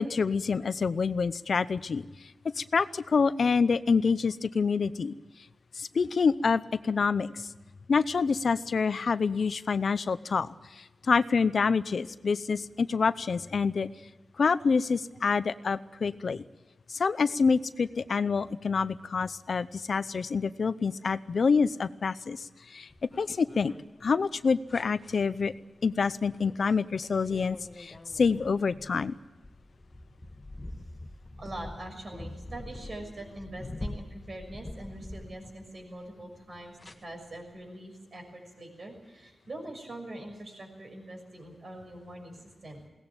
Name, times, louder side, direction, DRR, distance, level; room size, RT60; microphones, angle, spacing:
voice 1, 0.0-2.0 2.6-5.1 5.8-7.5 7.9-10.5 10.8-13.9 14.4-16.4 16.9-23.7 24.0-25.5 25.8-29.1, left 5 dB, 60° left, 14 dB, 0.6 m, -27 dB
sound 1, 22.9-23.8 24.7-25.2 26.4-26.7 27.0-35.8 36.8-36.9, left 1 dB, 25° left, 1.6 m, -44 dB
voice 2, 31.4-42.9, right 1 dB, 50° right, 3 dB, 6.4 m, -43 dB
21.5 x 18.0 x 9.0 m, 1.1 s
wide cardioid pair, 135°, 0 cm